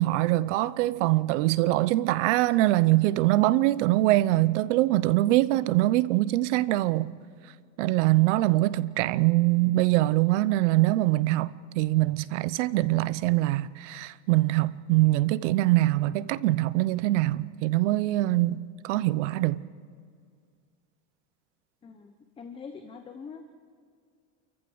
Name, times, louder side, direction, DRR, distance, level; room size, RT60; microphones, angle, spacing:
voice 1, 0.0-7.1 7.8-18.6 18.8-19.6, right 17 dB, 70° right, 0.8 m, -23 dB
voice 2, 21.8-23.4, left 5 dB, 15° left, 0.9 m, -43 dB
28.5 x 14.5 x 7.9 m
cardioid pair, 175°, 37 cm